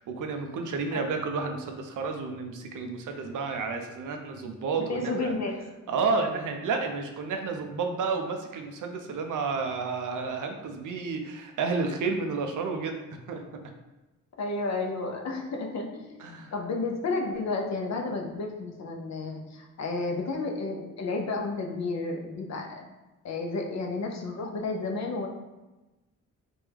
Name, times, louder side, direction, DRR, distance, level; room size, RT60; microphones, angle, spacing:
voice 1, 0.0-5.3 5.9-13.0 13.2-13.4 16.2-16.5, right 4 dB, 70° right, 5 dB, 0.5 m, -31 dB
voice 2, 4.8-5.6 14.4-16.2 16.5-22.9 23.2-25.3, left 3 dB, 55° left, 2 dB, 0.6 m, -32 dB
3.4 x 2.1 x 3.3 m, 1.1 s
cardioid pair, 80°, 33 cm